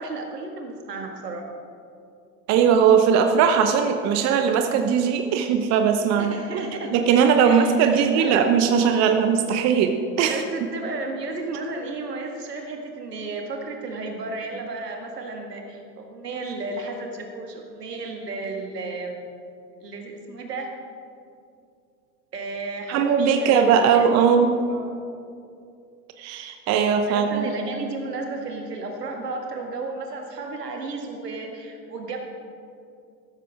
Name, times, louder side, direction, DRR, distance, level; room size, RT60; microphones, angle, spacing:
voice 1, 0.0-1.5 6.2-6.9 7.4-8.4 10.3-19.2 19.8-20.7 22.3-24.1 24.7-25.0 27.1-32.2, right 3 dB, 75° right, 2 dB, 2.0 m, -33 dB
voice 2, 2.5-6.6 6.9-10.4 22.9-24.6 26.2-27.4, right 7 dB, 35° right, 6 dB, 0.9 m, -19 dB
14.5 x 13.0 x 3.6 m, 2.4 s
figure-of-eight pair, 85°, 48 cm